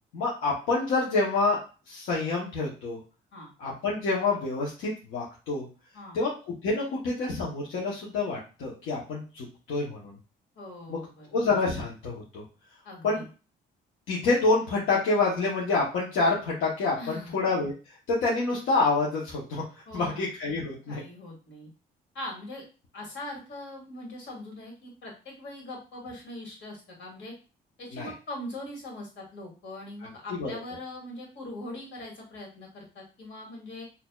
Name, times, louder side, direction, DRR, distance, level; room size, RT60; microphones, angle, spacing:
voice 1, 0.1-1.6 1.9-3.0 3.6-5.6 6.1-6.3 6.6-10.2 10.9-11.0 11.3-12.4 13.0-13.2 14.1-17.7 18.1-19.6 19.9-21.0 27.9-28.1 30.3-30.5, left 3 dB, 90° left, -5 dB, 0.9 m, -27 dB
voice 2, 10.6-11.4 12.8-13.3 17.0-17.3 19.9-20.2 20.9-21.7 22.1-22.6 22.9-27.3 27.8-33.8, left 1 dB, 65° left, -2 dB, 1.9 m, -41 dB
4.3 x 2.7 x 2.3 m, 0.33 s
cardioid pair, 90°, 20 cm